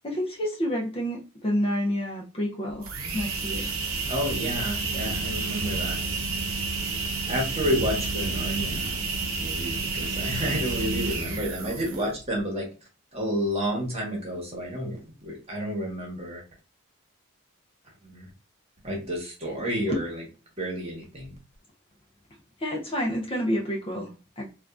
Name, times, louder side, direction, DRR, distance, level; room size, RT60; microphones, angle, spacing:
voice 1, 0.0-2.9 3.1-3.7 5.0-5.1 19.9-20.0 22.6-24.5, equal, 25° left, -1 dB, 0.5 m, -29 dB
sound 1, 2.8-12.2, right 3 dB, 85° right, 0.7 m, -30 dB
voice 2, 4.1-6.0 7.3-9.0 9.3-12.6 13.1-16.4 18.0-18.3 18.8-20.1 20.6-21.3, equal, 30° right, -1 dB, 1.1 m, -30 dB
3.4 x 2.4 x 2.4 m, 0.32 s
head